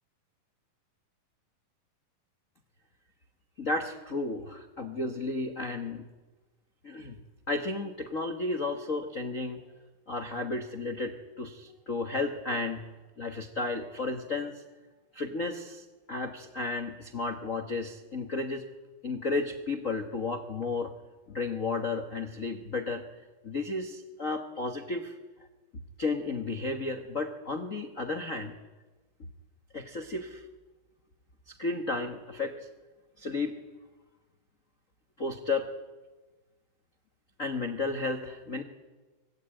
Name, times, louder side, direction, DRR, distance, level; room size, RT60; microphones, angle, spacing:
voice 1, 3.6-6.0 6.8-7.2 7.5-9.6 10.1-12.8 13.2-14.6 15.1-18.6 19.0-20.9 21.3-23.0 23.4-25.2 26.0-28.5 29.7-30.4 31.5-32.5 33.2-33.6 35.2-35.7 37.4-38.6, left 3 dB, 90° left, 4 dB, 0.7 m, -33 dB
25.0 x 20.0 x 9.0 m, 1.2 s
omnidirectional pair, 4.0 m